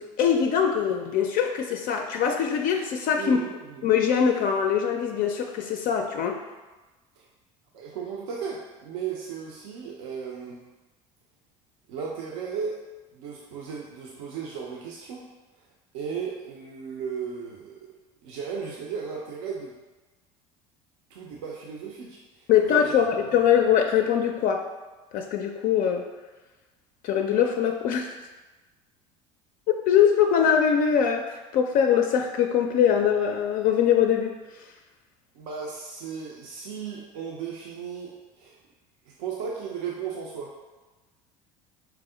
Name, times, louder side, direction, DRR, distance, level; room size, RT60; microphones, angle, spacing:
voice 1, 0.0-3.4 3.8-6.4 22.5-24.7 25.1-26.1 27.0-28.1 29.9-34.3, left 8 dB, 55° left, 3 dB, 0.4 m, -22 dB
voice 2, 3.2-3.9 7.2-7.3 7.7-10.6 11.9-12.8 13.1-15.2 15.9-17.9 18.2-19.7 21.1-22.9 23.2-23.3 35.4-38.6 39.1-40.5, right 6 dB, 80° right, -2 dB, 0.5 m, -35 dB
4.5 x 2.0 x 3.7 m, 1.2 s
hypercardioid pair, 80°, 17 cm